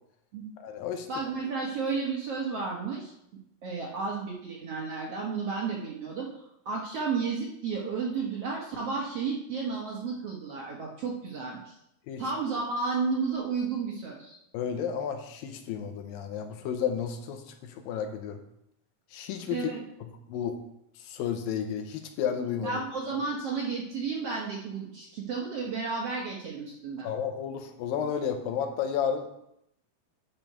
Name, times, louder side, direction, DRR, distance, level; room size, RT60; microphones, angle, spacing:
voice 1, 0.6-1.1 12.1-12.2 14.5-18.4 19.1-19.7 20.0-20.6 21.0-22.8 27.0-29.4, left 8 dB, 80° left, 6 dB, 2.5 m, -32 dB
voice 2, 1.1-3.1 3.6-6.3 6.7-11.8 12.2-14.4 19.5-19.8 22.6-27.1, right 4 dB, 65° right, -3 dB, 1.6 m, -32 dB
9.1 x 5.3 x 5.6 m, 0.78 s
omnidirectional pair, 4.1 m